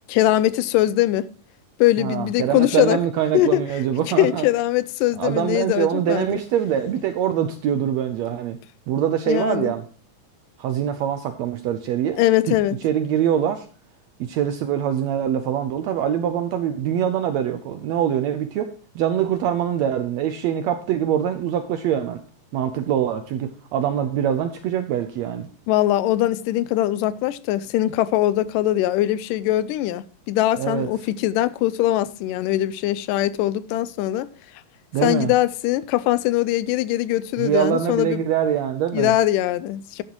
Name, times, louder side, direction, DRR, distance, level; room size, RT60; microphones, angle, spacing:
voice 1, 0.1-1.3 1.8-3.0 3.3-3.6 4.2-6.4 9.3-9.7 12.2-12.8 25.7-34.3 35.0-38.2 38.9-40.0, left 14 dB, 85° left, 2.2 m, -21 dB
voice 2, 2.0-4.5 5.2-8.6 8.9-9.8 10.6-12.2 12.5-12.6 12.8-13.7 14.2-22.2 22.5-25.5 30.6-30.9 34.9-35.3 37.4-39.1, right 9 dB, 80° right, 1.6 m, -24 dB
11.5 x 9.7 x 3.0 m
omnidirectional pair, 3.8 m